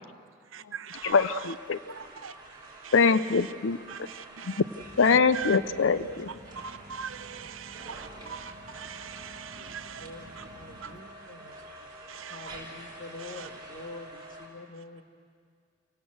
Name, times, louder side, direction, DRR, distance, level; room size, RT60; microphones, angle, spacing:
voice 1, 0.5-1.5 1.9-2.3 2.8-3.4 3.9-4.6 5.0-5.6 6.6-10.1 10.4-10.5 10.8-10.9 12.1-12.5 13.2-13.5, right 7 dB, 80° right, 0.7 m, -41 dB
sound 1, 0.9-14.5, right 1 dB, 25° right, 5.4 m, -48 dB
voice 2, 1.0-1.8 2.9-4.1 4.4-4.5 5.0-6.3, left 5 dB, 70° left, 0.5 m, -24 dB
sound 2, 4.8-11.0, right 1 dB, 60° right, 1.5 m, -51 dB
voice 3, 6.1-6.6 7.8-7.9 8.2-8.4 9.6-11.6 12.3-15.0, left 2 dB, 40° left, 1.8 m, -46 dB
27.5 x 18.0 x 7.9 m
head